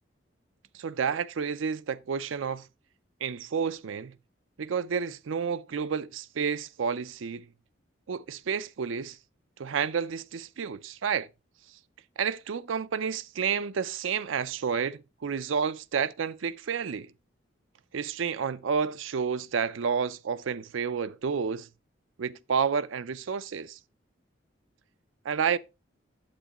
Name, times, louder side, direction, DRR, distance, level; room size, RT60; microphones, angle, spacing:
voice 1, 0.8-2.6 3.2-4.1 4.6-7.4 8.1-9.2 9.6-11.3 12.2-17.1 17.9-21.7 22.2-23.8 25.2-25.6, right 6 dB, 85° right, 0.5 m, -30 dB
8.8 x 7.9 x 2.9 m
head